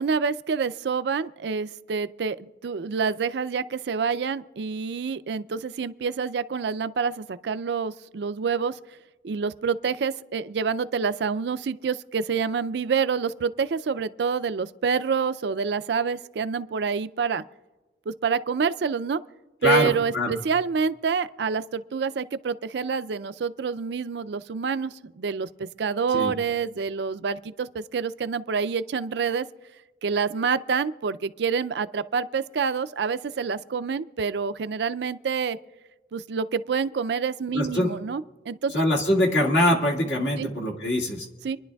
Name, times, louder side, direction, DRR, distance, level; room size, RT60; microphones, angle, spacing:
voice 1, 0.0-8.8 9.2-17.4 18.1-19.2 19.6-29.5 30.0-35.6 36.1-38.8 40.4-40.5 41.4-41.6, right 5 dB, 65° right, 14 dB, 0.4 m, -27 dB
voice 2, 19.6-20.3 26.1-26.3 37.5-37.9 38.7-41.3, left 1 dB, 65° left, -1 dB, 2.0 m, -23 dB
27.0 x 11.0 x 2.3 m, 1.2 s
head